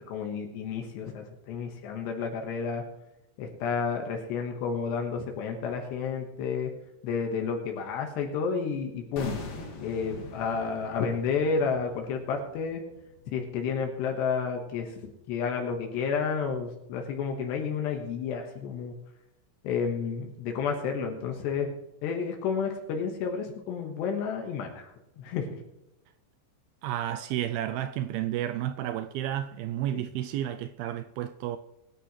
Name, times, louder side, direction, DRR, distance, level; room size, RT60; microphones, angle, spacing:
voice 1, 0.1-2.8 3.4-6.7 7.0-9.4 9.8-12.8 13.3-18.9 19.6-21.7 22.0-24.9 25.2-25.6 29.9-30.0, left 5 dB, 80° left, 3.5 m, -31 dB
sound 1, 9.2-14.2 14.4-14.6, left 3 dB, 50° left, 2.5 m, -43 dB
voice 2, 26.8-31.6, right 12 dB, 85° right, 2.1 m, -31 dB
23.0 x 10.0 x 3.2 m
omnidirectional pair, 4.9 m